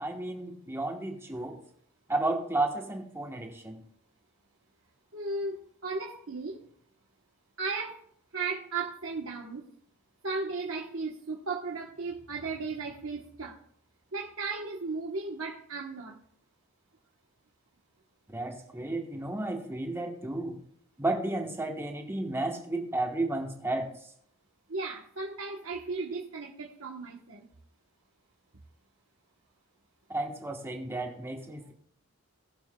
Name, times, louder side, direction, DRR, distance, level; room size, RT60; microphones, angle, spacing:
voice 1, 0.0-1.6 2.1-3.8 18.3-20.6 21.0-24.1 30.1-31.7, right 2 dB, 10° right, 3 dB, 1.1 m, -32 dB
voice 2, 5.1-5.6 5.8-6.6 7.6-8.0 8.3-9.6 10.2-13.6 14.1-16.2 24.7-27.5, right 3 dB, 65° right, -2 dB, 1.1 m, -35 dB
19.0 x 7.0 x 2.3 m, 0.67 s
head